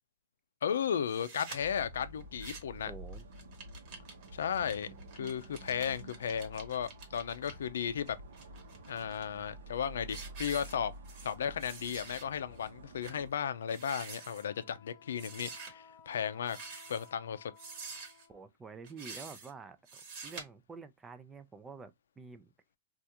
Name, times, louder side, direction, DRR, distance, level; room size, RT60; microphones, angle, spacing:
voice 1, 0.6-2.9 4.3-8.2 8.9-10.9 11.2-16.6 16.9-17.5, left 8 dB, 85° left, 0.4 m, -35 dB
sound 1, 1.1-1.6 2.2-2.8 3.1-7.5 8.1-9.2 9.7-9.8 10.1-11.3 11.6-12.2 12.6-12.7 13.0-13.2 13.6-14.5 15.2-15.7 16.4-17.1 17.6-18.3 18.8-19.5 19.9-20.4, right 4 dB, 40° right, 1.2 m, -48 dB
sound 2, 1.6-13.3, right 1 dB, 80° right, 0.8 m, -50 dB
voice 2, 2.9-3.3 18.3-22.5, right 4 dB, 10° right, 0.4 m, -49 dB
Wind instrument woodwind instrument, 14.0-18.5, left 8 dB, 15° left, 1.0 m, -58 dB
3.4 x 2.4 x 2.8 m
hypercardioid pair, 155°, 0 cm